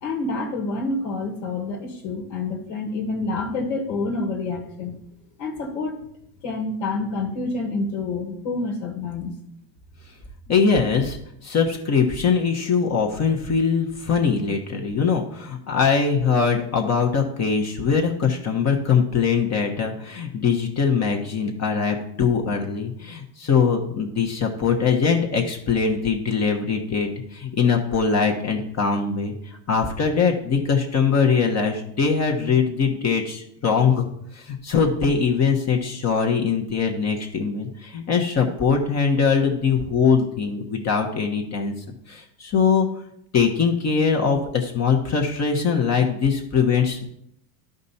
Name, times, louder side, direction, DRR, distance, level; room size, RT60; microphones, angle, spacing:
voice 1, 0.0-4.9 5.4-6.0 6.4-9.3, left 3 dB, 75° left, 2 dB, 1.8 m, -28 dB
voice 2, 10.5-41.7 42.1-42.9 43.3-47.0, left 5 dB, 35° left, 2 dB, 1.2 m, -22 dB
11.5 x 5.2 x 4.2 m, 0.75 s
supercardioid pair, 105°, 48 cm